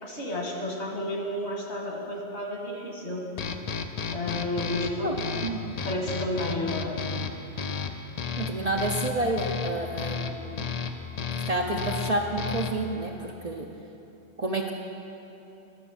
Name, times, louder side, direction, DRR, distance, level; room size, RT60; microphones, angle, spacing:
voice 1, 0.0-3.3 4.1-5.1 5.8-7.0, left 1 dB, 70° left, -2 dB, 2.0 m, -31 dB
sound 1, 3.4-12.9, left 5 dB, 55° left, 0.4 m, -33 dB
voice 2, 5.4-5.7 8.4-10.7 11.5-13.7 14.4-14.7, right 2 dB, 45° right, 1 dB, 0.6 m, -29 dB
11.5 x 6.2 x 7.0 m, 2.9 s
omnidirectional pair, 1.2 m